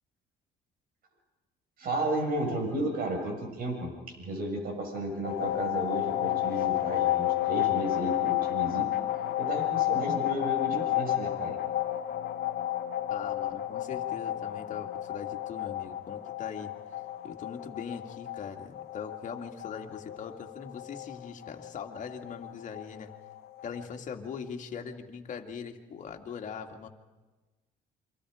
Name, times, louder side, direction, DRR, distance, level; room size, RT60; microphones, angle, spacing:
voice 1, 1.8-3.9 4.2-8.9 9.4-11.6, right 1 dB, 60° right, 3 dB, 6.4 m, -33 dB
sound 1, 5.2-23.8, left 14 dB, 70° left, 1.4 m, -32 dB
voice 2, 13.1-16.7 17.2-23.1 23.6-26.9, left 6 dB, 45° left, 4 dB, 2.3 m, -41 dB
28.5 x 25.0 x 5.1 m, 1.2 s
cardioid pair, 110°, 17 cm